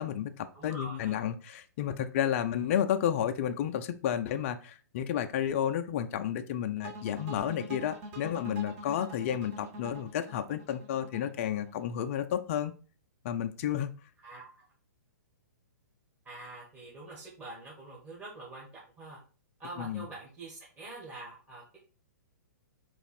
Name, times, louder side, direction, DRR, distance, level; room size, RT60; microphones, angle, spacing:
voice 1, 0.0-12.7 13.2-13.9 19.8-20.1, left 10 dB, 45° left, 7 dB, 0.4 m, -31 dB
voice 2, 0.5-1.2 14.2-14.5 16.2-19.2 19.6-21.8, right 2 dB, 15° right, -6 dB, 1.2 m, -45 dB
sound 1, 6.8-11.9, right 1 dB, 35° right, 1.2 m, -44 dB
4.0 x 2.4 x 4.2 m, 0.37 s
hypercardioid pair, 130°, 10 cm